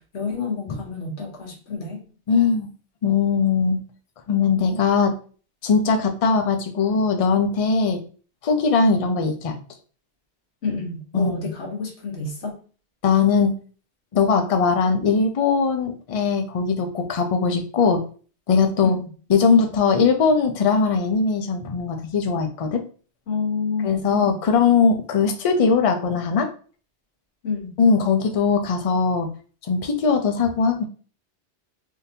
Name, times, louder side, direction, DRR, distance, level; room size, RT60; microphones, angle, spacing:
voice 1, 0.1-2.0 10.6-12.6 18.8-19.1 23.3-24.4 27.4-27.8, left 4 dB, 70° left, 1 dB, 1.2 m, -29 dB
voice 2, 2.3-2.7 3.0-3.8 4.3-5.1 5.6-8.0 8.4-9.6 11.1-11.4 13.0-13.5 14.1-18.0 18.5-19.0 19.3-22.8 23.8-26.5 27.8-29.3 29.7-30.8, left 5 dB, 50° left, 5 dB, 0.4 m, -20 dB
3.7 x 2.6 x 2.7 m, 0.40 s
omnidirectional pair, 1.2 m